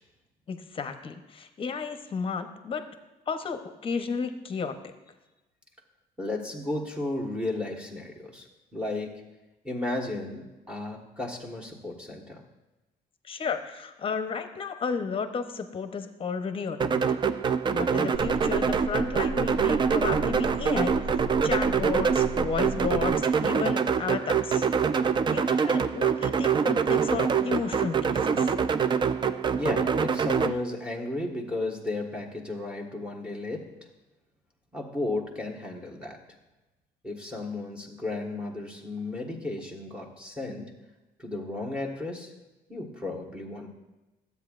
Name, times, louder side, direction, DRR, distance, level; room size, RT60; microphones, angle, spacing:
voice 1, 0.5-2.8 3.3-4.7 13.3-17.2 17.7-23.1 23.4-24.7 25.3-28.5, left 5 dB, 30° left, 8 dB, 0.8 m, -33 dB
voice 2, 6.2-9.1 9.6-12.4 29.6-33.7 34.7-36.2 37.0-40.7 41.2-42.3 42.7-43.7, left 2 dB, 5° right, 0 dB, 1.4 m, -34 dB
sound 1, 16.8-30.5, right 6 dB, 30° right, 0.4 m, -25 dB
sound 2, 18.1-23.1, right 1 dB, 80° right, 0.7 m, -36 dB
12.5 x 8.2 x 2.5 m, 1.1 s
cardioid pair, 110°, 17 cm